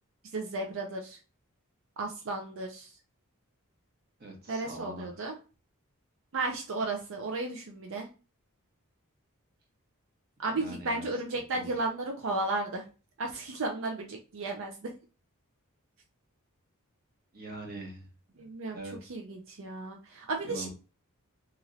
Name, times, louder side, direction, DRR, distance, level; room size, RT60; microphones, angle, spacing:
voice 1, 0.3-1.2 2.0-2.9 4.5-5.3 6.3-8.1 10.4-12.8 13.2-14.9 18.4-18.8 19.1-20.7, right 2 dB, 65° right, 2 dB, 0.5 m, -34 dB
voice 2, 4.2-5.1 10.5-11.2 11.5-11.7 17.3-18.1 18.4-18.5 18.7-19.1 20.4-20.7, right 2 dB, 45° right, 1 dB, 1.0 m, -43 dB
2.9 x 2.9 x 2.5 m, 0.34 s
head